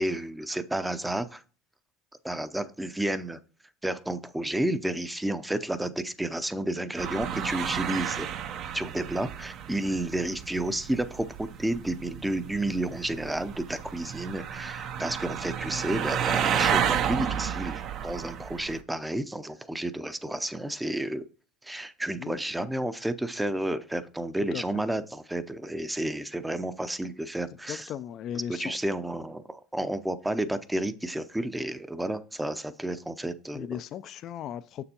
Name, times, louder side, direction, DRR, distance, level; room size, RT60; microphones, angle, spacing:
voice 1, 0.0-1.4 2.2-3.4 3.8-8.3 8.7-21.2 21.6-27.9 28.5-33.8, right 1 dB, 5° right, 0.5 m, -31 dB
sound 1, 7.0-18.8, right 8 dB, 55° right, 0.6 m, -31 dB
voice 2, 22.2-22.7 24.5-24.8 27.7-28.8 33.5-34.8, left 10 dB, 50° left, 0.3 m, -37 dB
6.7 x 6.7 x 2.8 m
supercardioid pair, 100°, 0 cm